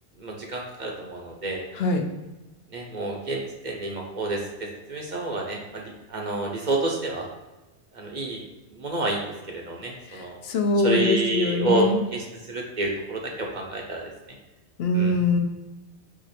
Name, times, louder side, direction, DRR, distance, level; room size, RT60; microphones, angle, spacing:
voice 1, 0.2-1.6 2.7-7.3 7.9-8.4 8.7-10.4 10.8-14.1 14.9-15.2, right 2 dB, 50° right, 0 dB, 0.7 m, -29 dB
voice 2, 10.1-12.0 14.8-15.4, left 2 dB, 70° left, 4 dB, 0.8 m, -23 dB
4.9 x 2.4 x 4.1 m, 1.1 s
omnidirectional pair, 1.1 m